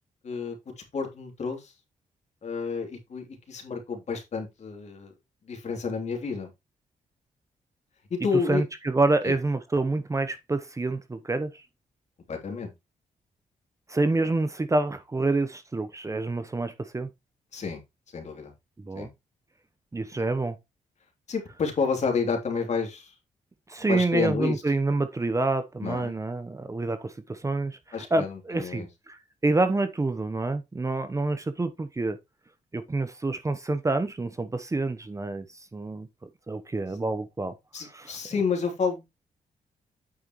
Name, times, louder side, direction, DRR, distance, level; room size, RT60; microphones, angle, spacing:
voice 1, 0.2-1.7 2.4-5.1 5.5-6.5 8.1-8.6 12.3-12.7 17.5-17.8 18.1-18.5 18.9-19.1 21.3-23.1 23.9-24.6 25.8-26.2 27.9-28.9 37.7-39.0, left 5 dB, 55° left, 3.2 m, -30 dB
voice 2, 8.5-11.5 13.9-17.1 18.8-19.1 19.9-20.6 23.7-27.8 28.1-29.2 29.4-32.2 32.7-35.4 35.7-36.1 36.5-37.5 37.9-38.1, right 2 dB, 25° right, 0.9 m, -27 dB
8.9 x 6.5 x 3.1 m
cardioid pair, 80°, 14 cm